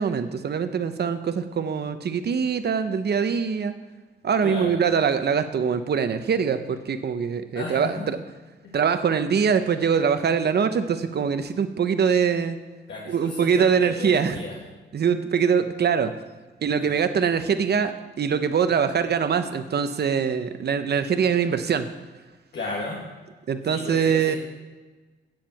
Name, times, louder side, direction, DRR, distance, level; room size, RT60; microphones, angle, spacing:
voice 1, 0.0-3.7 4.2-8.2 8.7-12.6 13.1-14.4 14.9-16.1 16.6-21.9 23.5-24.4, right 6 dB, 60° right, 10 dB, 0.9 m, -23 dB
voice 2, 4.4-4.8 7.5-8.1 8.6-8.7 12.9-14.6 16.7-17.0 22.5-23.0 23.7-24.4, left 2 dB, 65° left, -4 dB, 2.0 m, -34 dB
9.0 x 7.5 x 7.7 m, 1.3 s
wide cardioid pair, 115°, 19 cm